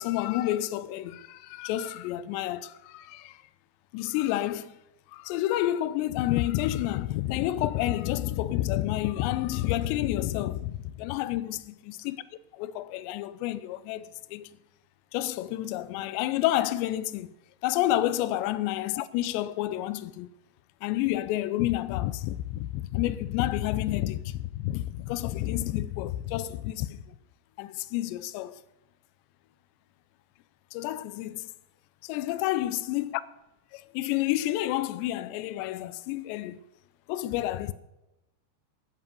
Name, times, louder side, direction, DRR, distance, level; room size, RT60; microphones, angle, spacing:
voice 1, 0.0-3.4 3.9-4.8 5.1-12.2 12.5-14.5 15.1-17.3 17.6-20.3 20.8-27.0 27.6-28.6 30.7-31.5 32.0-33.2 33.7-36.6 37.1-37.7, left 14 dB, 90° left, 2.8 m, -29 dB
13.5 x 13.0 x 5.2 m
omnidirectional pair, 4.9 m